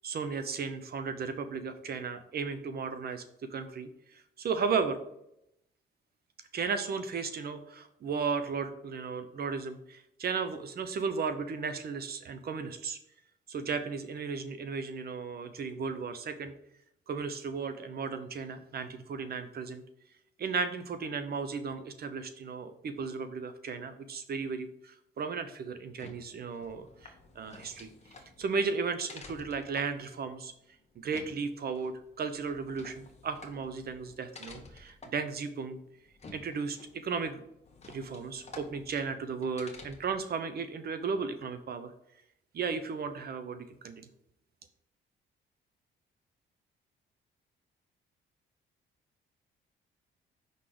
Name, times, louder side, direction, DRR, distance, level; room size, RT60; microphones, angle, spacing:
voice 1, 0.0-5.0 6.5-13.0 13.5-16.5 17.1-19.8 20.4-30.5 31.0-35.8 36.3-36.8 37.0-37.4 37.9-41.9 42.5-44.1, right 5 dB, 50° right, 10 dB, 0.8 m, -35 dB
sound 1, 25.8-40.3, left 3 dB, 35° left, 1.2 m, -52 dB
5.6 x 3.9 x 5.0 m, 0.78 s
cardioid pair, 90°, 20 cm